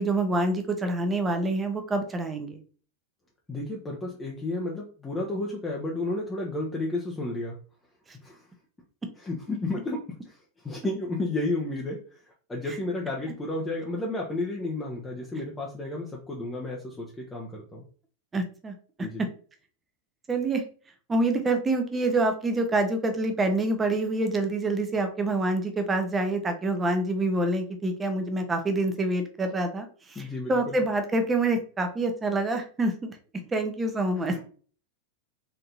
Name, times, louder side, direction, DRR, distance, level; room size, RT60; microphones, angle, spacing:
voice 1, 0.0-2.6 18.3-18.7 19.2-19.3 20.3-20.6 21.1-29.9 30.5-33.2 33.5-34.3, right 2 dB, 15° right, 6 dB, 0.9 m, -26 dB
voice 2, 3.5-7.6 8.2-8.5 9.2-17.8 19.0-19.2 30.1-30.8 34.2-34.4, left 2 dB, 10° left, -2 dB, 0.9 m, -32 dB
4.4 x 3.7 x 2.8 m, 0.41 s
figure-of-eight pair, 90°, 0 cm